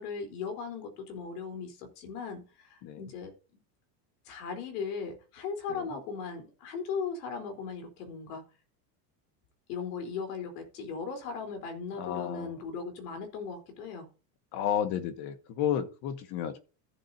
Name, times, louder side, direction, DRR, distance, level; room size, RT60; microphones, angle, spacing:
voice 1, 0.0-3.3 4.3-8.4 9.7-14.1, left 5 dB, 90° left, 4.1 m, -38 dB
voice 2, 12.0-12.6 14.5-16.6, left 9 dB, 55° left, 1.7 m, -32 dB
14.5 x 7.6 x 2.8 m
cardioid pair, 150°, 46 cm